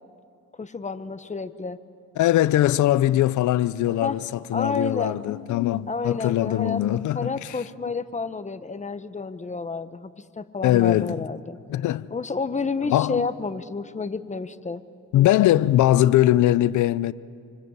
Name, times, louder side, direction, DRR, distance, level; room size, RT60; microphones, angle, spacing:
voice 1, 0.6-1.8 4.0-4.2 4.5-5.2 5.9-11.6 12.1-14.8, left 4 dB, 25° left, 1.2 m, -30 dB
voice 2, 2.2-7.6 10.6-11.2 11.7-12.1 12.9-13.3 15.1-17.1, left 14 dB, 75° left, 0.6 m, -21 dB
27.0 x 25.0 x 8.1 m
cardioid pair, 90°, 30 cm